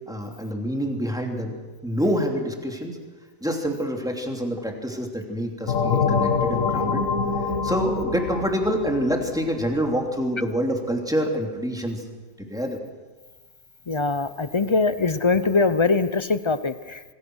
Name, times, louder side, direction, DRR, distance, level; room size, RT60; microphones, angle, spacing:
voice 1, 0.1-1.5 1.8-3.0 3.4-7.0 7.6-12.0 12.4-12.8, equal, ahead, 1 dB, 3.0 m, -26 dB
sound 1, 5.7-10.1, left 5 dB, 65° left, 1.8 m, -25 dB
voice 2, 13.9-17.0, left 4 dB, 35° left, 13 dB, 0.5 m, -22 dB
27.0 x 20.0 x 6.4 m, 1.3 s
omnidirectional pair, 1.6 m